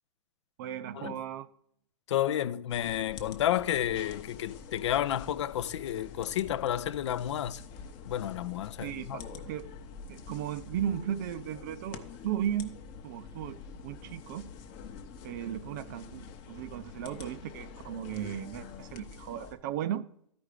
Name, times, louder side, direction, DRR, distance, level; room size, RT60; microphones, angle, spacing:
voice 1, 0.6-1.5 8.8-9.7 10.1-12.8 13.0-14.5 15.2-20.0, right 10 dB, 35° right, 0.5 m, -36 dB
voice 2, 2.1-7.6 8.1-9.2, left 11 dB, 60° left, 0.4 m, -31 dB
sound 1, 2.7-19.5, left 5 dB, 30° left, 0.8 m, -46 dB
13.0 x 5.1 x 4.8 m
hypercardioid pair, 150°, 17 cm